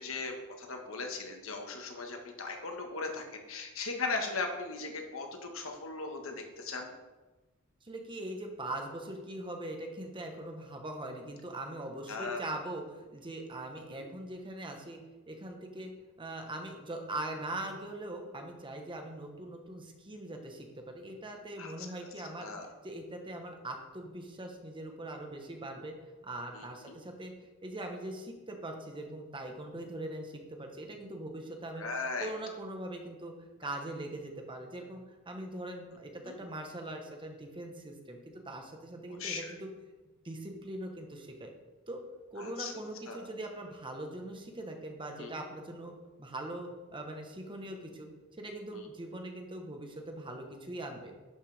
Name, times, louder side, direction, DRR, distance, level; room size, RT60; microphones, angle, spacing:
voice 1, 0.0-6.9 12.1-12.4 13.9-14.1 21.6-21.9 22.4-22.7 26.5-27.0 31.8-32.3 36.2-36.4 39.2-39.5 42.4-42.7 43.1-43.3 45.2-45.3 48.7-48.8, left 4 dB, 75° left, 3 dB, 1.3 m, -38 dB
voice 2, 7.8-15.0 15.3-15.9 16.2-22.5 22.8-25.9 26.2-27.3 27.6-31.8 32.2-35.0 35.3-38.2 38.5-39.7 40.2-41.5 41.9-42.0 42.3-45.9 46.2-48.1 48.4-51.1, right 1 dB, 25° right, 3 dB, 1.1 m, -41 dB
11.5 x 6.5 x 3.4 m, 1.2 s
head